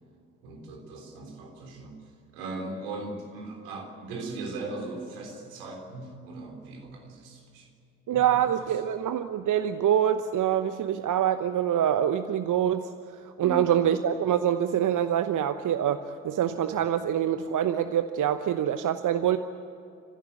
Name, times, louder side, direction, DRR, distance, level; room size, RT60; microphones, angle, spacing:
voice 1, 0.4-2.0 2.3-7.7 8.1-8.7 13.4-13.7, right 2 dB, 75° right, 3 dB, 3.6 m, -39 dB
voice 2, 8.1-12.9 13.4-19.4, right 10 dB, 50° right, 10 dB, 1.0 m, -25 dB
29.5 x 15.5 x 8.4 m, 2.7 s
figure-of-eight pair, 45°, 40 cm